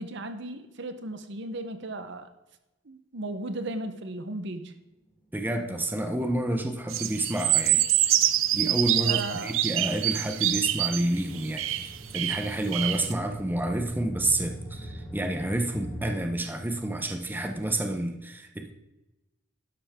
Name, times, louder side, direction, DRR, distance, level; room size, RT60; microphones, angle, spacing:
voice 1, 0.0-2.3 2.8-4.7 9.0-9.5, right 2 dB, 60° right, 9 dB, 0.9 m, -35 dB
voice 2, 5.3-7.8 8.5-11.8 12.1-18.7, right 1 dB, 10° right, 5 dB, 0.8 m, -29 dB
sound 1, 6.9-13.1, right 13 dB, 80° right, 0.6 m, -26 dB
sound 2, 7.8-16.1, right 1 dB, 15° left, 3.3 m, -43 dB
12.0 x 11.0 x 3.6 m, 1.0 s
head